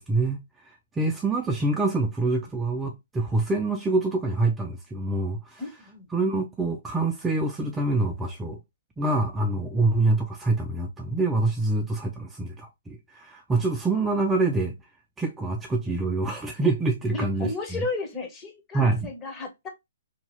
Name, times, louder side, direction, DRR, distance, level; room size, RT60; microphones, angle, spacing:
voice 1, 0.0-5.6 6.1-8.6 9.0-14.8 15.2-17.8 18.7-19.1, right 2 dB, 10° right, 0.4 m, -26 dB
voice 2, 5.6-6.1 17.1-19.7, left 3 dB, 20° left, 0.9 m, -34 dB
2.8 x 2.2 x 3.0 m
hypercardioid pair, 135°, 0 cm